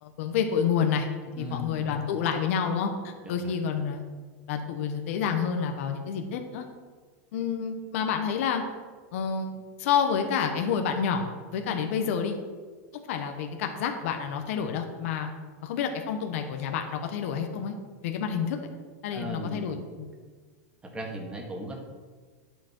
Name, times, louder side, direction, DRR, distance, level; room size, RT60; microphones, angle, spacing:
voice 1, 0.0-1.1 1.4-4.0 4.5-6.6 7.3-8.6 9.1-11.3 11.5-12.4 13.1-15.3 15.6-17.7 18.0-18.6 19.0-20.1, left 7 dB, 65° left, 5 dB, 1.1 m, -29 dB
voice 2, 1.4-1.9 3.2-3.6 19.1-19.7 20.8-21.8, equal, 10° right, 0 dB, 1.9 m, -37 dB
10.5 x 7.0 x 4.5 m, 1.5 s
supercardioid pair, 135°, 8 cm